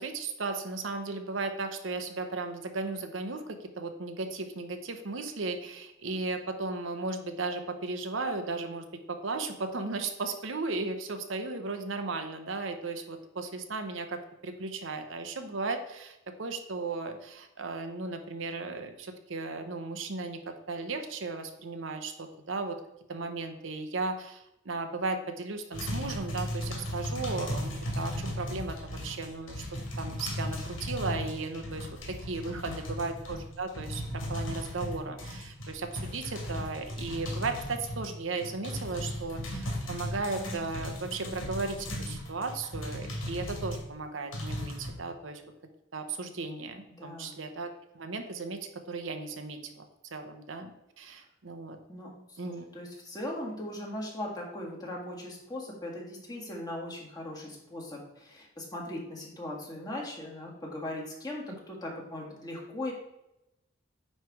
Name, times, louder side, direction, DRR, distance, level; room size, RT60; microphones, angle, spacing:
voice 1, 0.0-22.8 23.1-29.6 30.0-45.4 45.9-49.8 50.1-51.8 52.4-52.6, right 3 dB, 75° right, 6 dB, 0.8 m, -36 dB
sound 1, 25.7-43.8 44.3-44.9, equal, 90° left, 1.9 m, -36 dB
voice 2, 32.5-33.0 47.0-47.4 51.9-62.9, left 1 dB, 20° left, -3 dB, 1.8 m, -39 dB
9.4 x 3.3 x 4.7 m, 0.89 s
head